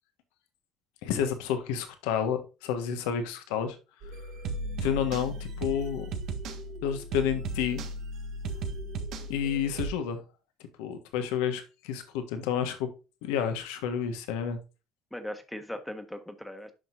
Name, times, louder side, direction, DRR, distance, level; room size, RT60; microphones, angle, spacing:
voice 1, 1.0-3.8 4.8-6.1 6.8-7.8 9.3-10.2 10.8-12.9 13.2-14.6, left 8 dB, 85° left, 1.4 m, -30 dB
sound 1, 4.0-9.9, right 2 dB, 70° right, 1.5 m, -36 dB
voice 2, 15.1-16.7, left 1 dB, 5° left, 1.4 m, -39 dB
10.5 x 5.9 x 2.6 m
supercardioid pair, 70°, 0 cm